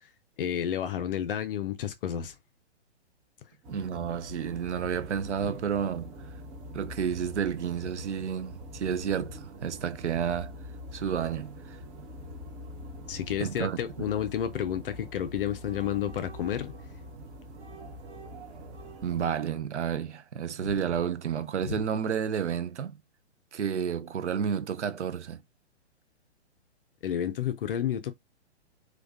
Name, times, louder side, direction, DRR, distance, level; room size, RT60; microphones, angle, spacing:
voice 1, 0.4-2.3 5.4-5.5 13.1-16.7 21.6-21.7 27.0-28.1, left 10 dB, 55° left, 0.5 m, -31 dB
sound 1, 3.6-19.3, left 1 dB, 20° right, 0.5 m, -44 dB
voice 2, 3.7-6.2 6.7-10.5 10.9-11.8 13.4-14.1 19.0-23.0 23.5-25.4, right 8 dB, 85° right, 0.5 m, -31 dB
2.4 x 2.2 x 2.4 m
figure-of-eight pair, 120°, 34 cm